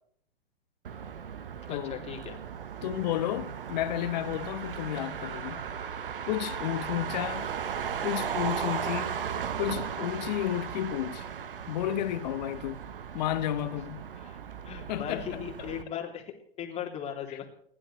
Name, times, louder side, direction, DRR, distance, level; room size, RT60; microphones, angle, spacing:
Motor vehicle (road), 0.8-15.8, right 8 dB, 65° right, 1.3 m, -36 dB
voice 1, 1.7-2.4 14.2-14.4 14.6-17.5, left 9 dB, 20° left, 2.9 m, -38 dB
voice 2, 2.8-5.7 6.3-7.5 8.0-9.1 9.6-11.3 11.7-12.8 13.1-14.1 14.9-15.7 17.3-17.4, left 13 dB, 45° left, 1.2 m, -32 dB
29.5 x 11.5 x 3.2 m
figure-of-eight pair, 110°, 30 cm